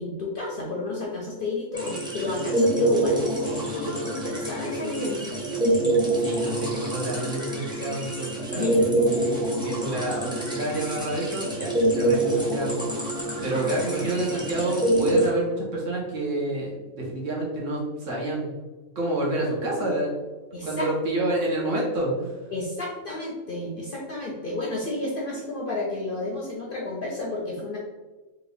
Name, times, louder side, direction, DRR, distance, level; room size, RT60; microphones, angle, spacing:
voice 1, 0.0-5.4 8.5-8.8 13.3-13.7 20.5-20.9 21.2-21.3 22.5-27.8, left 2 dB, 55° left, -3 dB, 0.6 m, -31 dB
sound 1, 1.7-15.3, right 1 dB, 5° right, 0.5 m, -26 dB
voice 2, 6.2-12.8 13.4-18.5 18.9-20.1 20.6-22.4, right 1 dB, 65° right, -4 dB, 1.4 m, -28 dB
3.6 x 2.6 x 3.3 m, 1.2 s
omnidirectional pair, 1.4 m